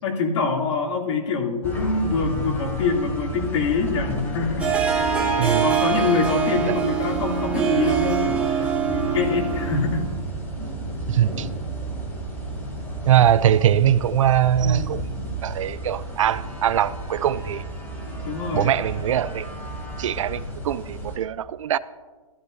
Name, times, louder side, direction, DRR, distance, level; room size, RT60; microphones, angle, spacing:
voice 1, 0.0-4.9 5.6-10.0 14.6-15.0 18.2-18.7, left 4 dB, 55° left, 2.9 m, -25 dB
sound 1, 1.6-21.2, right 2 dB, 15° left, 2.8 m, -32 dB
Harp, 4.6-10.1, right 7 dB, 5° right, 2.4 m, -24 dB
voice 2, 5.4-5.7 6.7-6.8 11.1-11.5 13.0-15.0 15.4-17.6 18.5-19.5 20.0-21.8, right 10 dB, 60° right, 0.4 m, -21 dB
15.0 x 13.0 x 2.7 m
hypercardioid pair, 140°, 18 cm